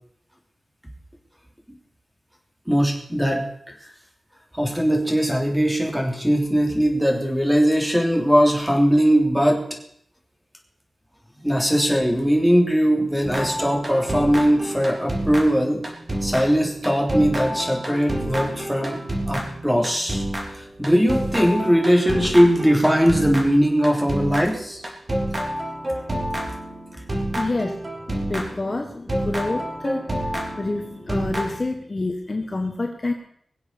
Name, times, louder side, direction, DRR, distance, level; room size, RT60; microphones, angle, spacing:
voice 1, 2.7-3.5 4.5-9.6 11.4-15.8 16.2-20.3 20.5-24.8 26.9-27.0, equal, 5° right, 1 dB, 3.3 m, -20 dB
sound 1, 13.2-28.7 29.1-31.6, right 1 dB, 30° right, 3.6 m, -29 dB
voice 2, 27.3-33.1, left 2 dB, 30° left, 3 dB, 1.4 m, -28 dB
22.0 x 7.8 x 6.9 m, 0.68 s
wide cardioid pair, 135°, 0 cm